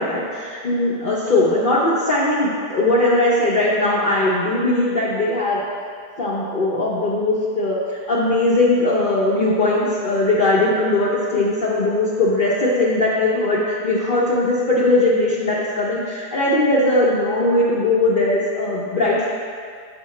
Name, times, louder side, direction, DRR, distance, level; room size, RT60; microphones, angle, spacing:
voice 1, 0.0-5.6 6.2-7.8 8.1-19.3, left 2 dB, 60° left, -7 dB, 0.5 m, -19 dB
7.0 x 5.1 x 3.1 m, 2.2 s
omnidirectional pair, 1.8 m